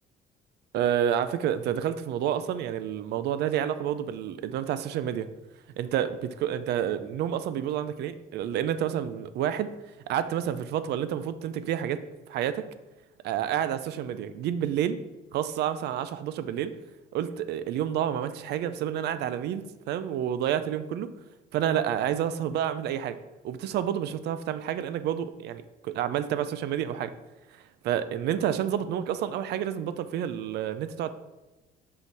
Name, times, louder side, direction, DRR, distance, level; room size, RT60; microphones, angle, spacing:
voice 1, 0.7-5.3 5.8-9.7 10.1-12.6 13.2-15.0 15.3-16.7 17.1-21.1 21.5-23.2 23.4-27.1 27.8-31.1, right 10 dB, 70° right, 13 dB, 0.4 m, -29 dB
5.6 x 4.1 x 4.6 m, 1.1 s
cardioid pair, 95°, 18 cm